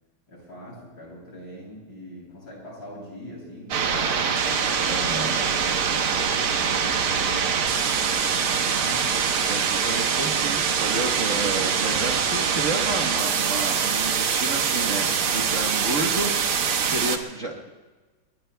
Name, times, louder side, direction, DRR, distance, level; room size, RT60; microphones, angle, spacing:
voice 1, 0.3-4.4 4.7-5.0 6.4-7.7 8.2-9.4, equal, 60° left, -4 dB, 8.4 m, -42 dB
sound 1, 3.7-17.2, right 6 dB, 85° right, 2.1 m, -24 dB
voice 2, 4.9-5.4 9.5-17.7, right 2 dB, 40° right, 0 dB, 1.5 m, -31 dB
sound 2, 5.4-8.2, right 5 dB, 65° right, 6.6 m, -42 dB
29.5 x 21.5 x 2.3 m, 1.3 s
omnidirectional pair, 2.3 m